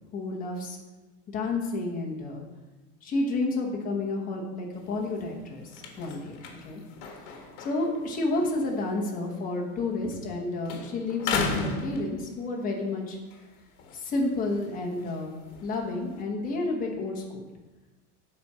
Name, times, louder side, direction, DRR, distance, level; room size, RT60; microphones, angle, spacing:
voice 1, 0.1-0.8 1.3-2.4 3.0-5.7 6.0-6.4 6.6-6.8 7.6-13.2 13.9-15.3 15.6-17.5, left 2 dB, 20° left, 0 dB, 1.2 m, -30 dB
sound 1, 4.7-10.4 10.6-12.7 13.1-16.2, left 4 dB, 50° left, 1.5 m, -37 dB
8.3 x 4.4 x 6.1 m, 1.1 s
supercardioid pair, 165°, 46 cm